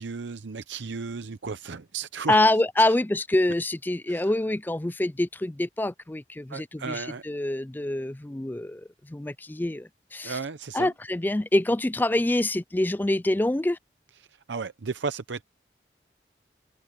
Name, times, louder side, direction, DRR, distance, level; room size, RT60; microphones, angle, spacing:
voice 1, 0.0-2.4 2.8-2.9 4.1-4.3 6.5-7.2 10.2-10.9 14.3-15.4, right 4 dB, 85° right, 0.7 m, -34 dB
voice 2, 2.3-10.4 10.7-13.8, left 1 dB, 10° left, 0.4 m, -26 dB
head